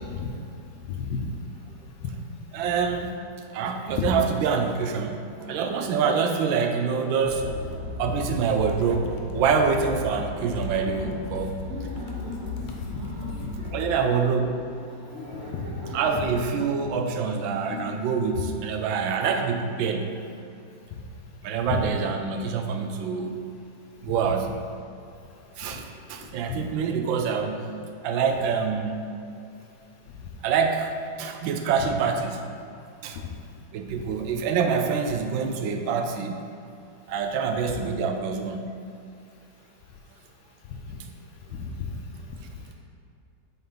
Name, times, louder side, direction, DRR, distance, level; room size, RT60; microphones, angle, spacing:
voice 1, 0.9-1.2 4.0-4.1 12.6-12.7 13.4-13.5 15.2-15.6 16.1-16.2 16.5-16.6 17.7-17.9 21.7-21.8 26.5-26.6 41.6-41.9, left 7 dB, 90° left, -1 dB, 1.5 m, -31 dB
voice 2, 2.5-3.2 3.5-5.2 5.5-7.5 8.0-9.1 9.3-11.6 13.7-14.6 15.9-20.2 21.4-23.4 24.0-24.5 25.6-27.6 28.0-29.0 30.4-30.9 31.2-32.4 33.0-33.2 33.7-36.5 37.1-38.7, right 6 dB, 80° right, 5 dB, 1.3 m, -26 dB
Laughter, 5.4-16.3, equal, 50° right, 0.9 m, -40 dB
sound 1, 7.2-14.0, left 4 dB, 70° left, 1.4 m, -36 dB
8.0 x 3.9 x 3.8 m, 2.5 s
omnidirectional pair, 2.1 m